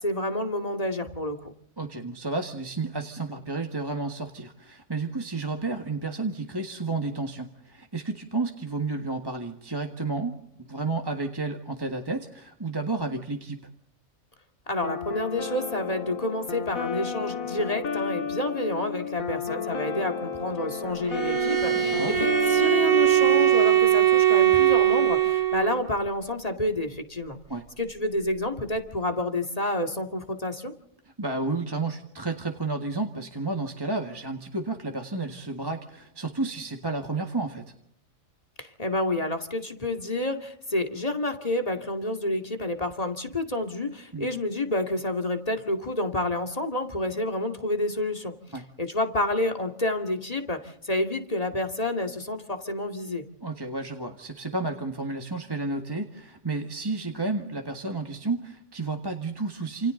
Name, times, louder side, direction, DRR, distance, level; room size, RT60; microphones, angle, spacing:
voice 1, 0.0-1.5 14.7-27.4 27.8-30.7 38.6-48.3 48.8-53.2, left 1 dB, 25° left, 4 dB, 2.5 m, -29 dB
voice 2, 1.8-13.6 21.8-22.2 27.5-27.7 31.2-37.7 44.1-44.3 48.5-48.6 53.4-59.9, right 3 dB, 20° right, 2 dB, 1.7 m, -31 dB
sound 1, 14.8-23.5, left 6 dB, 85° left, 2.2 m, -32 dB
Bowed string instrument, 21.1-25.8, right 12 dB, 65° right, 3.0 m, -21 dB
29.5 x 28.0 x 3.9 m, 0.74 s
omnidirectional pair, 1.4 m